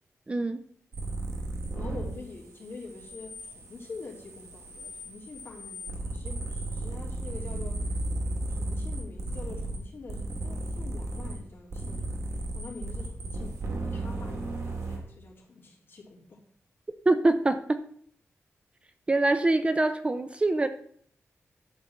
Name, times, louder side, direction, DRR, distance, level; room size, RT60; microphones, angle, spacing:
voice 1, 0.3-0.6 17.1-17.8 19.1-20.7, right 2 dB, 25° right, 9 dB, 0.5 m, -24 dB
sound 1, 0.9-2.2 2.5-9.8 10.1-11.4 11.7-15.0, right 2 dB, 90° right, 2.3 m, -35 dB
voice 2, 1.7-7.8 8.5-12.2 12.5-16.4, left 3 dB, 45° left, -3 dB, 3.2 m, -45 dB
11.0 x 4.1 x 7.8 m, 0.62 s
wide cardioid pair, 165°, 5 cm